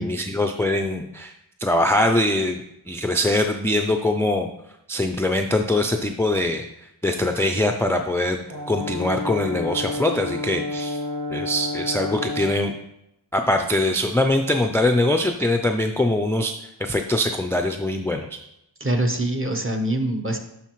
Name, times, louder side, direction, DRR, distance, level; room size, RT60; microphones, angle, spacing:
voice 1, 0.0-1.3 1.6-2.6 2.9-4.5 4.9-6.7 7.0-11.0 11.3-12.7 13.3-16.5 16.8-18.4, left 1 dB, 5° left, 4 dB, 0.4 m, -22 dB
Brass instrument, 8.5-12.7, left 2 dB, 60° right, 1.6 m, -30 dB
voice 2, 18.8-20.4, right 1 dB, 30° right, 4 dB, 1.0 m, -24 dB
11.5 x 4.1 x 3.1 m, 0.83 s
wide cardioid pair, 55°, 45 cm